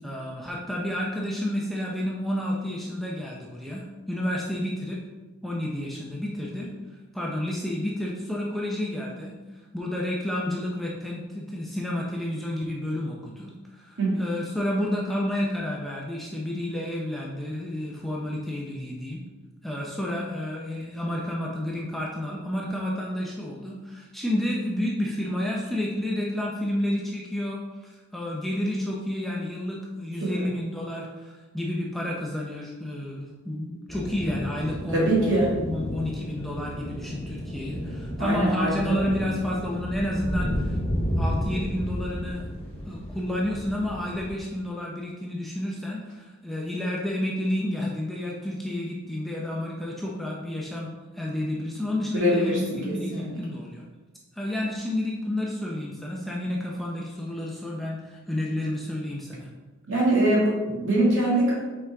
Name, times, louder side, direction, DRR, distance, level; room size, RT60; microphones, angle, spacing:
voice 1, 0.0-5.0 5.4-6.7 7.1-9.3 9.7-19.2 19.6-40.8 41.2-42.5 42.9-50.9 51.1-53.8 54.3-59.5, left 1 dB, ahead, -4 dB, 0.6 m, -30 dB
sound 1, 33.9-44.4, equal, 30° left, 1.3 m, -32 dB
voice 2, 34.9-35.5 38.2-39.1 52.1-53.2 59.9-61.5, right 1 dB, 60° right, -5 dB, 2.0 m, -23 dB
6.1 x 4.5 x 3.5 m, 1.2 s
head